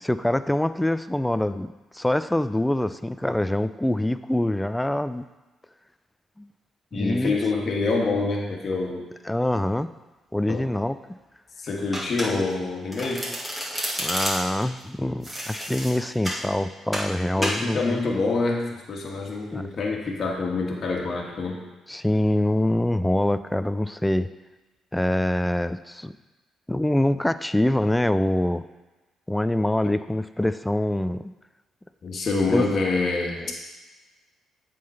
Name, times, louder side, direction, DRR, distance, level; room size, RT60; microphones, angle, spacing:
voice 1, 0.0-5.3 6.4-6.5 6.9-7.4 9.3-9.9 10.3-11.0 14.0-18.0 19.5-19.6 21.9-24.3 24.9-26.1 26.7-28.6 29.3-31.3 32.5-32.6 33.4-33.5, left 1 dB, 10° left, 12 dB, 0.3 m, -25 dB
voice 2, 6.9-9.1 10.5-10.7 11.6-13.3 17.4-21.6 29.8-29.9 32.0-33.4, left 3 dB, 50° left, -1 dB, 1.5 m, -26 dB
Domestic sounds home sounds, 11.9-12.6 12.9-14.6 15.2-16.4 16.9-17.1 17.4-17.6, equal, 10° right, 2.0 m, -30 dB
7.4 x 3.9 x 5.5 m, 1.2 s
supercardioid pair, 65°, 0 cm